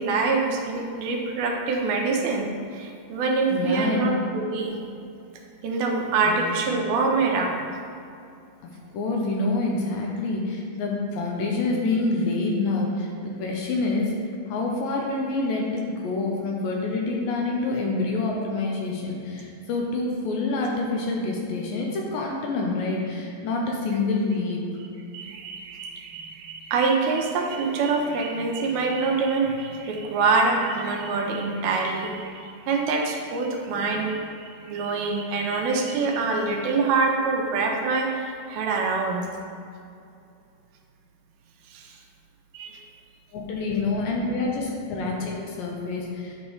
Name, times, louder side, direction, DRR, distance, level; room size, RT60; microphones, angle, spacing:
voice 1, 0.0-4.8 5.6-7.5 25.1-39.3 41.7-42.0 42.5-42.8, right 4 dB, 80° right, 1 dB, 2.6 m, -25 dB
voice 2, 3.5-4.1 6.3-6.4 8.9-13.1 13.4-14.1 14.5-24.6 43.3-46.4, left 3 dB, 75° left, -1 dB, 2.2 m, -27 dB
9.5 x 5.0 x 3.2 m, 2.5 s
omnidirectional pair, 4.4 m